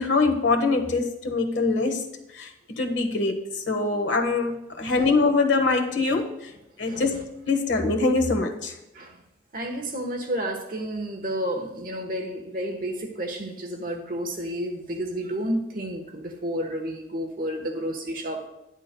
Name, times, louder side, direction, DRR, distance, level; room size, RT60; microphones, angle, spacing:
voice 1, 0.0-2.0 2.3-6.3 6.8-7.1 7.5-8.7, left 3 dB, 80° left, 4 dB, 1.3 m, -23 dB
voice 2, 9.5-18.5, right 1 dB, 50° right, 3 dB, 1.2 m, -31 dB
10.5 x 10.5 x 2.3 m, 0.90 s
head